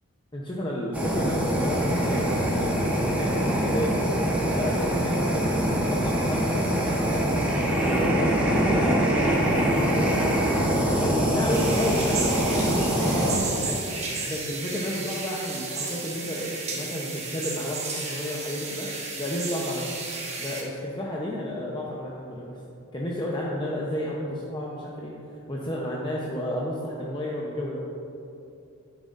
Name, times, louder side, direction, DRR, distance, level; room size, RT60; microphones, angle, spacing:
voice 1, 0.3-4.1 4.5-7.4 7.8-10.4 10.9-13.8 14.3-18.9 19.2-19.9 20.4-22.6 22.9-25.2 25.5-27.8, left 1 dB, 20° left, -4 dB, 0.7 m, -32 dB
Fire, 0.9-13.4, equal, 5° right, 1.0 m, -24 dB
sound 1, 11.5-20.6, right 4 dB, 30° right, 1.1 m, -33 dB
10.5 x 9.2 x 2.5 m, 2.8 s
head